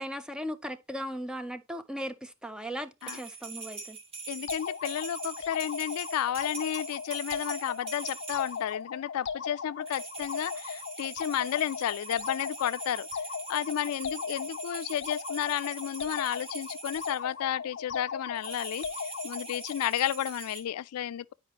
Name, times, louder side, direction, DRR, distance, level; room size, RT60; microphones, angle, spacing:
voice 1, 0.0-4.0, equal, 5° right, 0.4 m, -37 dB
sound 1, 3.0-8.7 9.8-17.2 18.3-20.6, right 4 dB, 25° right, 1.3 m, -43 dB
voice 2, 4.3-13.1 13.5-21.3, left 10 dB, 85° left, 0.3 m, -32 dB
sound 2, 4.5-19.9, left 6 dB, 55° left, 0.7 m, -38 dB
9.8 x 5.0 x 2.8 m
head